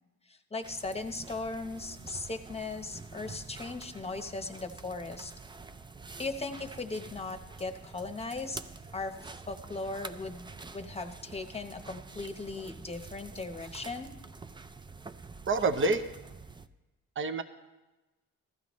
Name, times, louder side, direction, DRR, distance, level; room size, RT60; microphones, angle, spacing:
voice 1, 0.3-5.3 6.2-8.6 8.9-14.1, left 3 dB, 20° left, 7 dB, 1.0 m, -38 dB
sound 1, 0.6-16.7, right 4 dB, 15° right, 0.4 m, -47 dB
voice 2, 15.5-16.0 17.2-17.4, right 3 dB, 40° right, 9 dB, 0.8 m, -27 dB
15.0 x 12.5 x 3.1 m, 1.1 s
cardioid pair, 90°, 31 cm